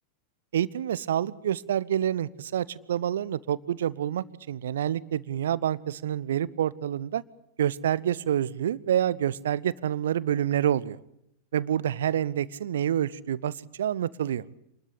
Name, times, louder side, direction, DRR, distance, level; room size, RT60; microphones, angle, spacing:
voice 1, 0.5-7.2 7.6-11.0 11.5-14.4, right 10 dB, 60° right, 20 dB, 1.0 m, -27 dB
28.0 x 21.0 x 8.5 m, 0.76 s
figure-of-eight pair, 90°, 0 cm